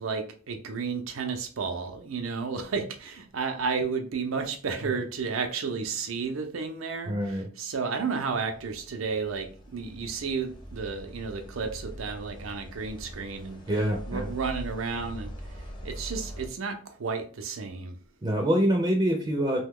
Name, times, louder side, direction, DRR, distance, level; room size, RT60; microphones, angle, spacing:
voice 1, 0.0-13.6 14.1-17.9, right 5 dB, 85° right, 5 dB, 0.6 m, -32 dB
voice 2, 7.1-7.5 13.7-14.3 18.2-19.6, equal, 20° right, 1 dB, 0.4 m, -25 dB
sound 1, 8.4-16.5, equal, 25° left, 0.6 m, -42 dB
2.9 x 2.2 x 3.6 m, 0.42 s
head